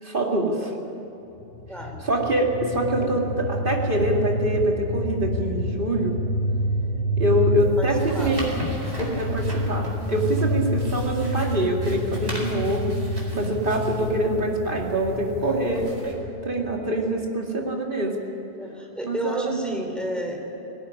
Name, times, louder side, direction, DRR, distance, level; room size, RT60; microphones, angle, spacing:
voice 1, 0.0-0.7 2.0-6.2 7.2-8.5 9.0-13.0 13.3-16.2 16.4-18.2 19.0-19.6, right 1 dB, 55° right, 0 dB, 2.8 m, -25 dB
sound 1, 1.4-16.8, equal, 55° left, 4.6 m, -28 dB
voice 2, 1.7-2.0 3.0-3.2 7.8-8.3 15.4-15.8 18.6-20.4, equal, ahead, 1 dB, 3.7 m, -32 dB
sound 2, 7.6-16.1, equal, 85° right, 4.7 m, -39 dB
18.5 x 18.5 x 9.8 m, 2.9 s
omnidirectional pair, 1.0 m